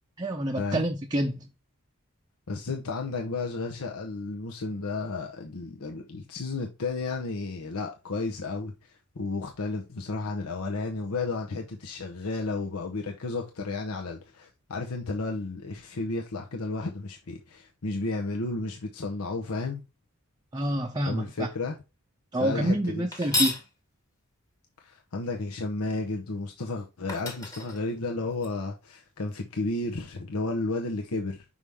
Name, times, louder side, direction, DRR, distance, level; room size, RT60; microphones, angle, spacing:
voice 1, 0.2-1.5 20.5-21.5 22.3-23.6, right 1 dB, 20° right, 0.6 m, -27 dB
voice 2, 2.5-19.8 21.1-21.8 22.4-23.1 24.8-31.4, left 3 dB, 80° left, 0.8 m, -32 dB
sound 1, 23.1-23.7 26.6-26.7 27.1-28.5, left 2 dB, 15° left, 1.2 m, -31 dB
5.5 x 4.9 x 3.5 m
head